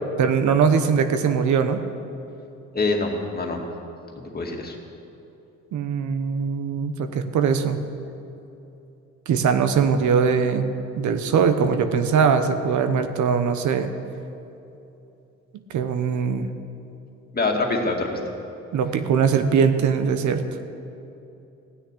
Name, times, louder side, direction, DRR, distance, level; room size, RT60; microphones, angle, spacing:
voice 1, 0.2-1.8 5.7-7.8 9.3-13.9 15.7-16.5 18.7-20.4, right 6 dB, 70° right, 8 dB, 1.0 m, -21 dB
voice 2, 2.7-3.6 4.3-4.8 17.3-18.1, left 3 dB, 30° left, 1 dB, 2.2 m, -24 dB
15.5 x 6.6 x 9.8 m, 2.8 s
cardioid pair, 90°, 30 cm